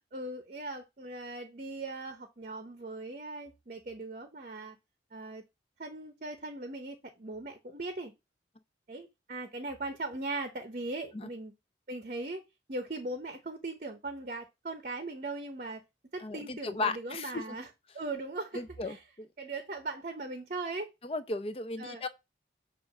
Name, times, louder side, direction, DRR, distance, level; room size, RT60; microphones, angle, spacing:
voice 1, 0.1-4.8 5.1-5.4 5.8-8.1 8.9-11.5 11.9-12.4 12.7-15.8 16.1-17.7 17.9-19.0 19.4-20.9 21.8-22.0, right 2 dB, 45° right, 0.7 m, -39 dB
voice 2, 16.2-17.4 18.5-19.3 21.0-22.1, left 3 dB, 30° left, 0.5 m, -35 dB
6.7 x 2.5 x 5.5 m
head